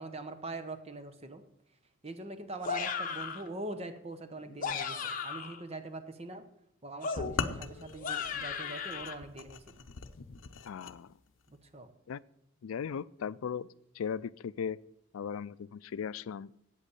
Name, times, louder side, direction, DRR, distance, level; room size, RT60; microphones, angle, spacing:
voice 1, 0.0-1.4 2.0-6.4 6.8-9.7 11.5-11.9, right 2 dB, 30° right, 9 dB, 1.0 m, -43 dB
sound 1, 2.6-3.5 4.4-5.6 7.0-9.1, left 6 dB, 40° left, 1.0 m, -36 dB
sound 2, 7.2-11.0, left 4 dB, 65° left, 0.7 m, -40 dB
voice 2, 10.6-11.1 12.1-12.2 12.6-13.7 14.0-14.8 15.1-16.5, left 7 dB, 85° left, 18 dB, 0.4 m, -37 dB
8.5 x 8.1 x 8.4 m, 0.80 s
head